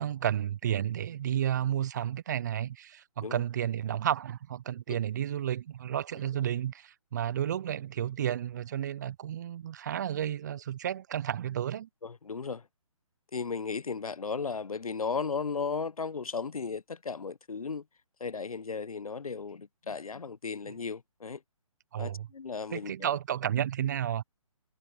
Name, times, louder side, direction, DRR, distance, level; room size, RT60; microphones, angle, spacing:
voice 1, 0.0-11.9 20.6-20.7 21.9-22.3 22.7-24.2, right 10 dB, 30° right, 0.5 m, -32 dB
voice 2, 12.0-12.6 13.3-17.8 18.2-21.4 22.0-23.1, left 5 dB, 80° left, 0.9 m, -35 dB
figure-of-eight pair, 145°, 18 cm